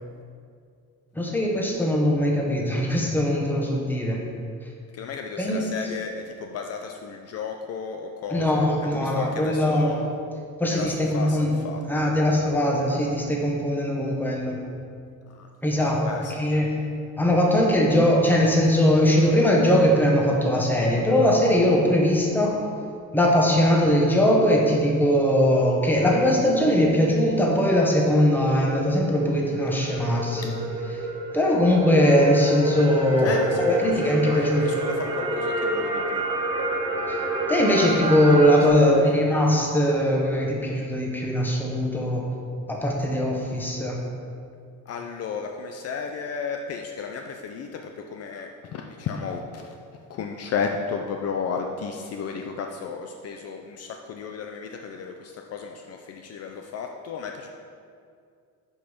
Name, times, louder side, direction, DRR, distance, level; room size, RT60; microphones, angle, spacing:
voice 1, 1.1-4.2 5.4-5.7 8.3-9.9 10.6-11.5 11.8-14.5 15.6-16.0 16.3-16.7 17.2-22.6 23.1-30.5 31.3-34.7 37.1-37.2 37.5-42.2 42.7-44.0, equal, 5° left, -1 dB, 1.1 m, -21 dB
voice 2, 4.9-10.1 10.7-12.1 15.4-15.5 15.8-16.3 30.4-30.5 33.2-36.3 38.7-39.2 44.9-49.7 50.1-57.5, left 6 dB, 50° left, 3 dB, 0.6 m, -34 dB
sound 1, 27.1-38.7, right 1 dB, 15° right, 0.9 m, -29 dB
10.5 x 5.5 x 5.1 m, 2.3 s
cardioid pair, 165°, 32 cm